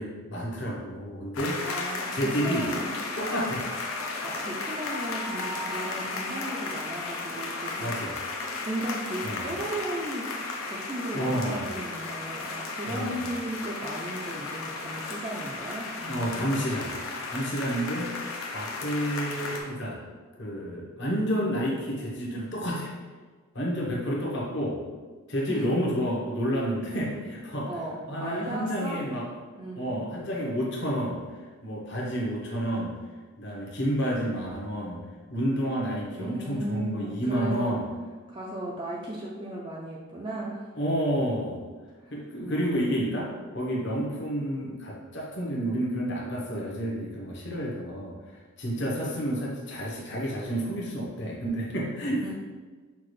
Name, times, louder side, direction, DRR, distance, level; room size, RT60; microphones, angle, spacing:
voice 1, 0.0-1.6 2.1-2.7 3.2-3.7 7.8-8.2 9.2-9.5 11.1-11.7 12.9-13.3 16.1-16.9 17.3-18.1 18.5-20.0 20.4-22.9 23.5-24.8 25.3-27.7 28.1-29.2 29.8-31.2 31.6-32.9 33.4-35.0 35.3-37.9 40.8-41.7 42.1-48.1 48.6-52.3, equal, 55° left, -3 dB, 1.0 m, -30 dB
sound 1, 1.4-19.6, left 3 dB, 80° left, 0.7 m, -34 dB
voice 2, 1.6-2.9 4.2-7.9 8.7-16.6 25.5-25.7 27.7-29.0 29.6-29.9 36.2-37.8 38.3-40.7 42.0-42.1 42.4-42.9 52.2-52.3, right 1 dB, 25° right, -4 dB, 0.4 m, -36 dB
5.7 x 2.4 x 3.1 m, 1.4 s
head